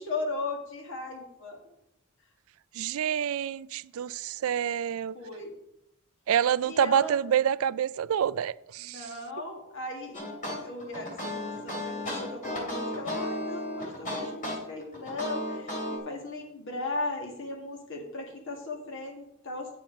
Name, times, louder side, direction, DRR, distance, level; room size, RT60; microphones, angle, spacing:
voice 1, 0.0-1.6 5.1-5.5 6.6-7.2 8.8-10.2 10.6-19.7, left 2 dB, 60° left, 1.9 m, -37 dB
voice 2, 2.8-5.2 6.3-9.1, right 9 dB, 70° right, 0.3 m, -27 dB
sound 1, 10.1-16.0, left 1 dB, 40° left, 2.8 m, -34 dB
8.7 x 7.5 x 5.2 m
head